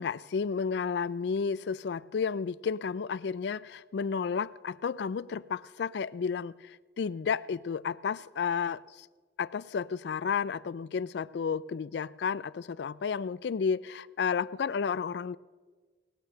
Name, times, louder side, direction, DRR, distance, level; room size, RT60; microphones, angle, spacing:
voice 1, 0.0-6.5 7.0-8.8 9.4-15.4, left 6 dB, 65° left, 0.3 m, -32 dB
18.5 x 8.7 x 6.6 m
head